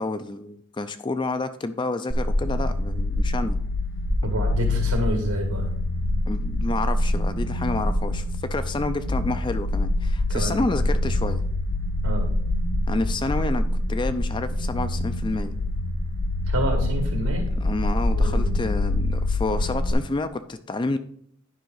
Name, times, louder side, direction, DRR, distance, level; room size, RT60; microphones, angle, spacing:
voice 1, 0.0-3.6 6.3-11.4 12.9-13.6 13.9-15.5 17.6-21.0, left 2 dB, 20° left, 11 dB, 0.4 m, -29 dB
sound 1, 2.1-19.9, left 1 dB, 65° left, 1.2 m, -25 dB
voice 2, 4.2-5.7 10.3-10.6 12.0-12.3 16.5-17.5 18.1-18.6, right 1 dB, 90° right, 3 dB, 2.3 m, -28 dB
10.0 x 5.2 x 3.9 m, 0.63 s
head